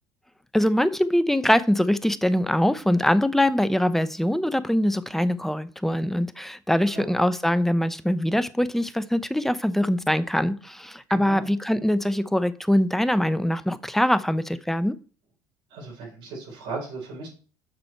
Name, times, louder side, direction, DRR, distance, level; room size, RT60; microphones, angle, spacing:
voice 1, 0.5-15.0, left 1 dB, 5° left, 14 dB, 0.8 m, -23 dB
voice 2, 11.1-11.5 15.7-17.3, right 3 dB, 70° right, -4 dB, 4.8 m, -36 dB
7.7 x 6.1 x 4.5 m, 0.38 s
hypercardioid pair, 70°, 9 cm